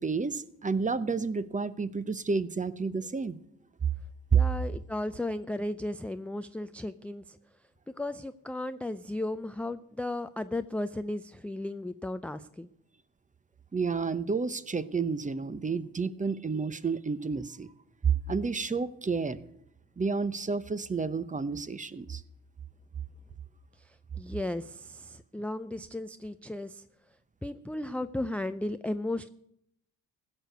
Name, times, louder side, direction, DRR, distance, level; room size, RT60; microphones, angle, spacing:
voice 1, 0.0-3.4 4.3-4.4 13.7-17.7 18.0-19.4 20.0-22.2, right 5 dB, 20° right, 15 dB, 0.8 m, -30 dB
voice 2, 4.3-7.4 8.0-12.7 24.2-26.8 27.4-29.3, left 1 dB, 5° left, 10 dB, 0.5 m, -35 dB
16.0 x 6.6 x 7.9 m, 0.75 s
hypercardioid pair, 60°, 39 cm